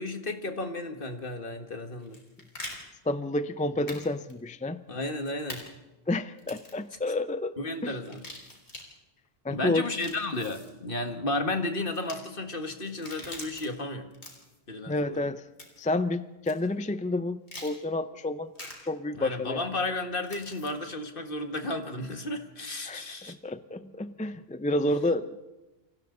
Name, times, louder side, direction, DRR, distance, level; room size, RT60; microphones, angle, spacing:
voice 1, 0.0-2.2 4.9-5.7 7.6-8.2 9.5-14.1 14.7-15.3 19.1-23.3, left 2 dB, 55° left, 6 dB, 1.8 m, -33 dB
sound 1, 2.0-2.8 3.9-4.0 4.3-4.4 5.5-5.6 6.4-6.8 8.0-8.8 9.8-10.7 11.9-12.2 12.9-13.7 14.1-14.6 15.6-15.9 16.5-16.6 17.5-17.7 18.6-18.7 20.3-20.7, left 1 dB, 85° left, 4.0 m, -43 dB
voice 2, 3.1-4.8 6.1-7.6 7.8-7.9 9.4-9.9 14.9-15.4 15.8-18.5 18.8-19.7 22.9-25.4, left 2 dB, 10° left, 12 dB, 0.4 m, -30 dB
29.0 x 25.0 x 3.9 m, 1.1 s
omnidirectional pair, 1.1 m